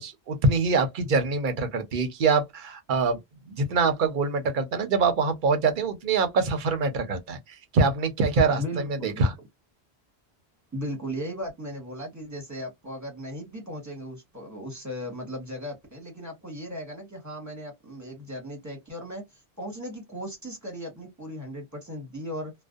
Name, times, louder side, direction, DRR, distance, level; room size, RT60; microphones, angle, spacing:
voice 1, 0.0-3.2 3.5-7.4 7.7-8.6 9.0-9.3, right 4 dB, 55° right, 0.7 m, -24 dB
voice 2, 8.5-9.3 10.7-22.5, equal, 15° right, 1.0 m, -37 dB
2.5 x 2.1 x 2.3 m
omnidirectional pair, 1.1 m